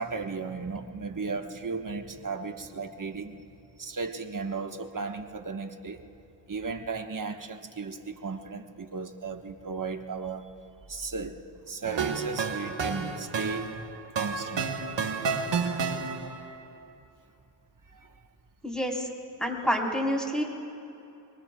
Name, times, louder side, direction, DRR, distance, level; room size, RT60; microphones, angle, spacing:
voice 1, 0.0-3.4 3.8-6.0 6.5-10.5 10.9-11.4 11.7-14.7 17.9-18.0, right 4 dB, 45° right, 5 dB, 1.4 m, -35 dB
sound 1, 11.8-16.5, right 5 dB, 70° right, 1.4 m, -31 dB
voice 2, 18.6-19.1 19.4-20.4, equal, ahead, -1 dB, 3.9 m, -28 dB
24.5 x 23.5 x 2.3 m, 2.9 s
cardioid pair, 55°, 45 cm